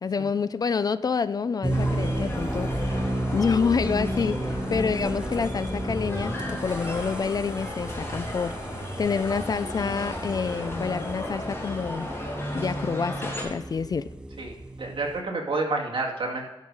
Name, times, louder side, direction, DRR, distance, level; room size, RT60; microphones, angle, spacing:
voice 1, 0.0-8.6 9.0-12.1 12.5-14.1, left 5 dB, 45° left, 15 dB, 0.4 m, -28 dB
sound 1, 1.6-15.2, right 1 dB, 10° right, 0.7 m, -32 dB
sound 2, 1.7-13.4, left 1 dB, 25° left, 3.3 m, -35 dB
voice 2, 14.4-16.5, right 3 dB, 65° right, -1 dB, 2.3 m, -29 dB
12.0 x 5.6 x 4.8 m, 1.0 s
wide cardioid pair, 120°, 9 cm